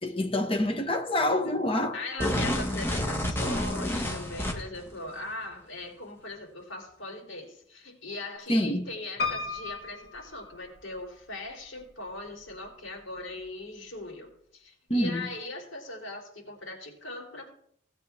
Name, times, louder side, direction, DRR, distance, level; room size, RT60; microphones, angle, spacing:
voice 1, 0.0-2.0 8.5-8.9 14.9-15.3, left 1 dB, 30° left, 1.4 m, -26 dB
voice 2, 1.9-17.5, left 2 dB, 85° left, 4.0 m, -40 dB
sound 1, 2.2-4.9, left 1 dB, 10° left, 1.4 m, -29 dB
Piano, 9.2-11.2 11.8-12.5 12.8-12.9 13.1-13.2, left 4 dB, 50° left, 2.8 m, -35 dB
17.5 x 8.1 x 3.5 m
head